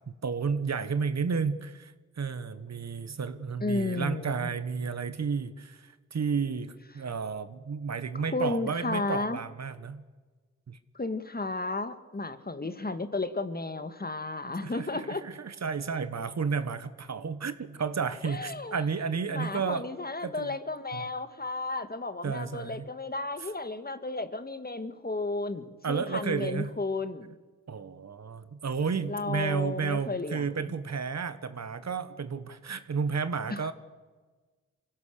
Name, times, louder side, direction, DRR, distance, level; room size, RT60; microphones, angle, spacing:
voice 1, 0.2-10.0 10.7-10.8 14.6-19.8 20.2-20.5 20.9-21.0 22.2-22.9 25.8-26.7 27.7-33.7, right 5 dB, 55° right, 13 dB, 1.4 m, -32 dB
voice 2, 3.6-4.5 8.1-9.4 10.9-15.2 18.2-18.8 19.3-27.4 29.1-30.8 33.5-33.7, left 3 dB, 30° left, 11 dB, 1.8 m, -33 dB
23.5 x 16.5 x 6.7 m, 1.3 s
cardioid pair, 50°, 31 cm